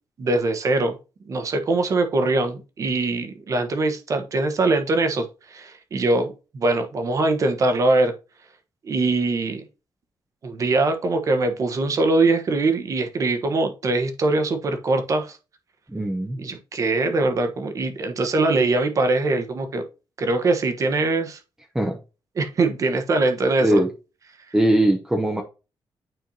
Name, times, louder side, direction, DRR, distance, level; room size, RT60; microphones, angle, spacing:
voice 1, 0.2-1.0 1.2-8.1 8.8-9.6 10.4-15.4 16.4-19.8 20.2-21.4 22.4-23.8, right 2 dB, 40° right, 1.3 m, -22 dB
voice 2, 15.9-16.4 21.7-22.0 23.6-23.9 24.5-25.4, right 1 dB, 5° right, 0.7 m, -20 dB
9.1 x 4.4 x 2.8 m
wide cardioid pair, 180°, 8 cm